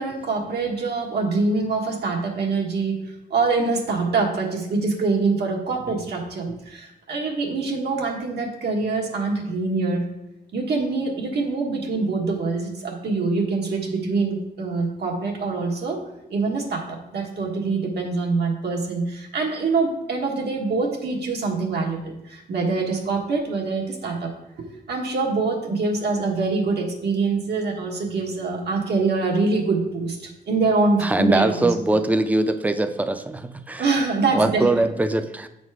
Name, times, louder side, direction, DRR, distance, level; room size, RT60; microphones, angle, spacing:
voice 1, 0.0-10.0 10.5-16.0 16.2-24.3 24.6-31.9 33.8-34.7, right 3 dB, 85° right, 0 dB, 1.4 m, -24 dB
voice 2, 31.0-33.9 34.3-35.5, right 2 dB, 10° right, 9 dB, 0.4 m, -22 dB
7.8 x 4.2 x 4.7 m, 0.89 s
wide cardioid pair, 125°, 17 cm